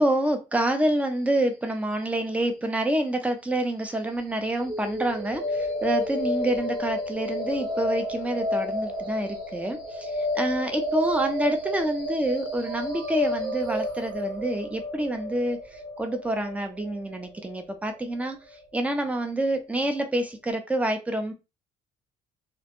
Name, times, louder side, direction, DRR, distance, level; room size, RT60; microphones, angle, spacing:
voice 1, 0.0-18.4 18.7-21.3, right 1 dB, 10° right, 0.5 m, -27 dB
sound 1, 4.6-18.6, equal, 80° right, 1.2 m, -31 dB
2.2 x 2.0 x 2.9 m
cardioid pair, 110°, 17 cm